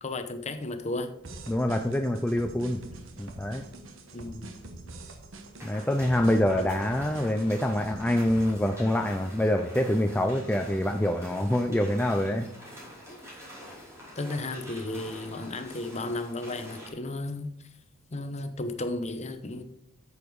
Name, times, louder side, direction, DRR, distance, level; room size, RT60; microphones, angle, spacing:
voice 1, 0.0-1.1 4.1-4.5 6.5-6.6 13.1-13.3 14.2-17.5 18.1-19.6, left 2 dB, 35° left, 9 dB, 0.8 m, -34 dB
sound 1, 1.2-8.5, right 2 dB, 65° right, 1.2 m, -45 dB
voice 2, 1.5-2.8 3.2-3.6 5.6-12.5, left 1 dB, 5° left, 4 dB, 0.4 m, -26 dB
sound 2, 5.6-16.9, equal, 15° right, 3.3 m, -46 dB
8.4 x 7.0 x 4.7 m, 0.73 s
head